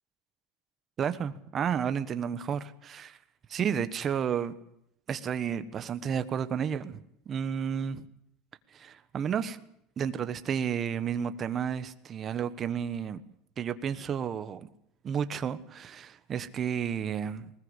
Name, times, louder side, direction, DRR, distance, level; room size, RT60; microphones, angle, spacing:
voice 1, 1.0-3.2 3.5-4.5 5.1-7.0 7.3-8.0 8.7-9.6 10.0-13.2 13.6-14.7 15.0-17.5, right 8 dB, 25° right, 12 dB, 1.3 m, -31 dB
20.0 x 19.5 x 8.1 m, 0.74 s
supercardioid pair, 160°, 0 cm